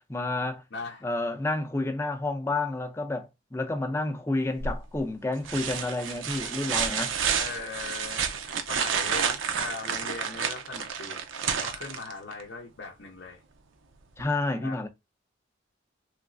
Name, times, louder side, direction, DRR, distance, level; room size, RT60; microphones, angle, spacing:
voice 1, 0.1-0.6 1.0-7.1 14.2-14.9, left 2 dB, 15° left, 0.5 m, -30 dB
voice 2, 0.7-1.1 7.4-13.4 14.6-14.8, left 4 dB, 60° left, 0.6 m, -39 dB
sound 1, 4.6-5.0 5.4-12.4 14.2-14.3, right 7 dB, 85° right, 0.6 m, -30 dB
3.2 x 3.1 x 2.5 m
head